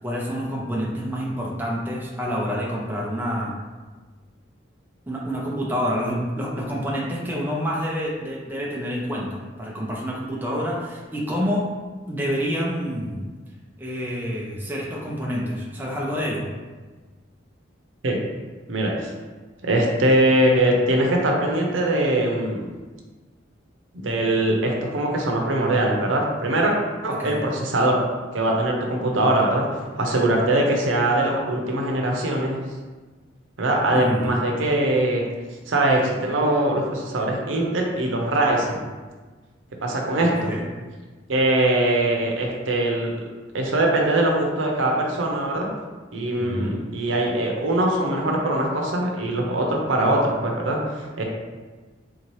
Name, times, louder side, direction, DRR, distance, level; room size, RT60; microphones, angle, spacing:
voice 1, 0.0-3.5 5.1-11.7 12.1-13.2 13.8-16.5 27.1-27.4 33.9-34.3 40.2-40.6 46.4-46.8, equal, 10° right, -4 dB, 0.5 m, -28 dB
voice 2, 18.7-19.1 19.6-22.7 23.9-26.7 27.0-28.0 28.3-29.6 30.0-32.6 33.6-35.2 35.7-38.8 39.8-40.5 41.3-43.1 43.5-45.7 46.1-51.2, right 1 dB, 85° right, 0 dB, 0.7 m, -22 dB
3.7 x 2.8 x 3.1 m, 1.3 s
head